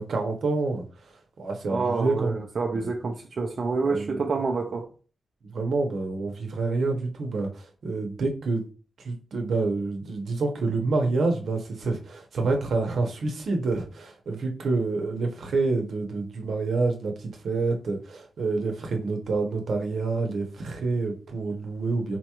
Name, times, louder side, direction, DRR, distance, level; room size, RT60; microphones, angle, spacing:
voice 1, 0.0-2.3 2.7-2.9 3.8-4.3 5.4-8.6 9.0-22.2, right 3 dB, 70° right, 0.8 m, -28 dB
voice 2, 1.7-4.9, right 4 dB, 45° right, 0.4 m, -28 dB
4.0 x 2.3 x 2.9 m
wide cardioid pair, 155°, 0 cm